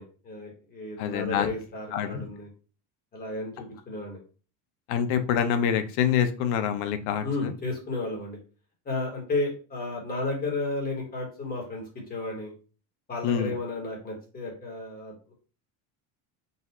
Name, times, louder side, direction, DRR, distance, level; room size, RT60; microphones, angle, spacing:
voice 1, 0.0-2.5 3.1-4.2 7.2-8.4 8.8-11.8 12.1-12.5 13.1-15.3, left 2 dB, 25° left, -1 dB, 1.3 m, -33 dB
voice 2, 1.0-1.5 1.9-2.3 4.9-7.5 13.2-13.6, left 8 dB, 80° left, 9 dB, 0.7 m, -26 dB
4.0 x 2.4 x 4.1 m, 0.37 s
cardioid pair, 160°, 38 cm